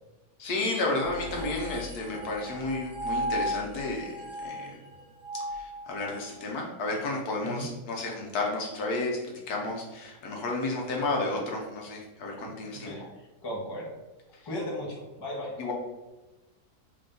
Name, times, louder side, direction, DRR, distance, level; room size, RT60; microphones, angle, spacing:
voice 1, 0.4-4.7 5.3-9.2 9.5-12.9 15.6-15.7, left 2 dB, 70° left, -1 dB, 1.2 m, -32 dB
sound 1, 1.0-6.4, equal, 40° right, 1.2 m, -36 dB
voice 2, 12.4-13.9 14.4-15.5, equal, 25° left, -4 dB, 0.6 m, -37 dB
3.4 x 2.6 x 3.7 m, 1.1 s
omnidirectional pair, 1.9 m